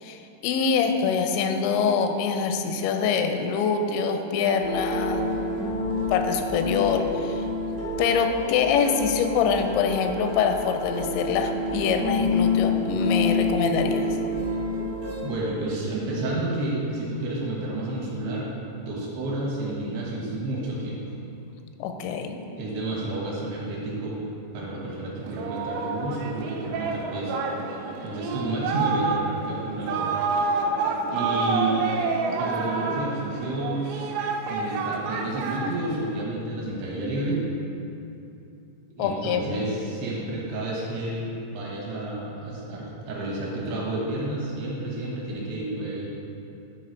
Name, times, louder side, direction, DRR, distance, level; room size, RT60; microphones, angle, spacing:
voice 1, 0.0-5.3 6.1-7.4 8.0-14.1 21.8-22.4 39.0-39.6, left 6 dB, 85° left, 6 dB, 2.8 m, -25 dB
sound 1, 4.6-15.2, left 2 dB, 55° right, 1.7 m, -28 dB
voice 2, 15.2-21.0 22.6-24.2 24.5-27.4 27.7-30.1 31.1-31.9 32.4-34.1 34.5-37.5 39.0-46.1, right 2 dB, 70° right, -5 dB, 3.0 m, -30 dB
Singing, 25.3-36.2, right 4 dB, 90° right, 2.9 m, -28 dB
11.0 x 3.9 x 4.4 m, 2.7 s
omnidirectional pair, 5.0 m